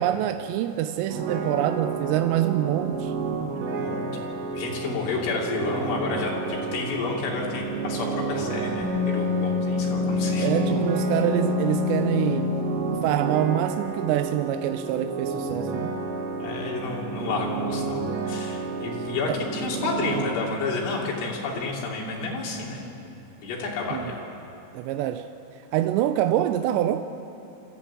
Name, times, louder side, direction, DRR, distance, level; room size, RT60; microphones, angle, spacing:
voice 1, 0.0-3.1 10.4-12.6 13.0-16.0 19.3-19.4 23.9-24.1 24.7-25.3 25.7-27.1, right 12 dB, 80° right, 2.6 m, -25 dB
sound 1, 1.1-20.3, right 4 dB, 60° right, 3.3 m, -31 dB
voice 2, 3.5-4.1 4.5-10.5 16.4-22.9 23.4-24.2, left 3 dB, 80° left, 5.3 m, -30 dB
Wind instrument woodwind instrument, 8.8-13.2, left 6 dB, ahead, 4.0 m, -27 dB
27.0 x 14.0 x 8.7 m
omnidirectional pair, 5.5 m